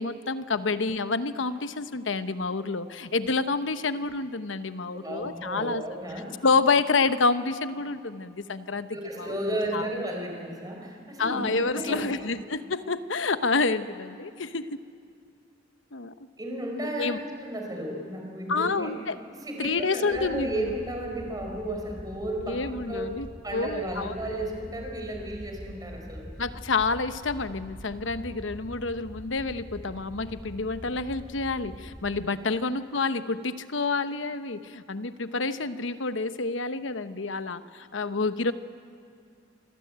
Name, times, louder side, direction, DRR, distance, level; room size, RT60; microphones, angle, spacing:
voice 1, 0.0-5.8 6.4-8.9 9.2-9.9 11.2-14.8 15.9-16.1 17.0-17.2 18.5-19.2 19.6-20.6 22.4-24.1 26.4-38.5, left 4 dB, 85° left, 12 dB, 1.0 m, -28 dB
voice 2, 4.9-6.4 8.9-12.2 16.4-18.9 19.3-23.1 23.4-26.3 32.5-32.6, right 1 dB, 20° right, 1 dB, 4.8 m, -34 dB
sound 1, 20.1-32.3, equal, ahead, 0.8 m, -44 dB
27.0 x 23.0 x 8.8 m, 2.3 s
head